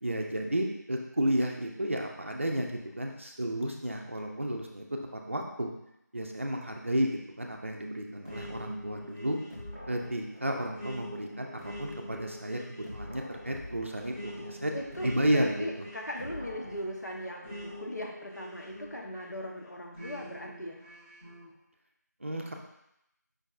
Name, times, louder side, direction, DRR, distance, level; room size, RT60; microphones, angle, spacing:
voice 1, 0.0-4.9 5.1-5.7 6.1-9.4 9.9-14.7 15.0-15.8 22.2-22.5, right 1 dB, 40° right, 2 dB, 0.5 m, -32 dB
sound 1, 8.2-19.3 19.9-21.5, left 1 dB, 10° left, 1.1 m, -45 dB
voice 2, 14.7-20.8, left 1 dB, 65° left, 0 dB, 0.9 m, -39 dB
5.2 x 3.6 x 2.5 m, 0.81 s
figure-of-eight pair, 170°, 10 cm